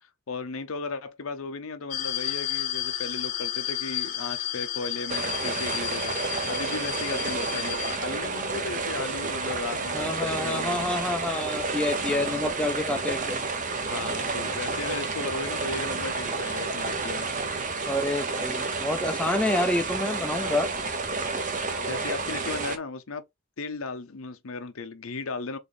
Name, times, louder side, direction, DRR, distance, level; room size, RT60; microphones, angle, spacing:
voice 1, 0.3-10.9 12.0-12.4 12.9-13.0 13.9-17.3 20.4-20.6 21.8-23.2 23.6-25.6, left 3 dB, 65° left, 0.7 m, -36 dB
sound 1, 1.9-8.0, left 12 dB, 35° left, 0.8 m, -32 dB
sound 2, 5.1-22.8, right 3 dB, 35° right, 0.7 m, -30 dB
voice 2, 9.9-13.4 17.9-20.7, left 1 dB, 5° left, 0.5 m, -28 dB
4.1 x 3.6 x 3.4 m
head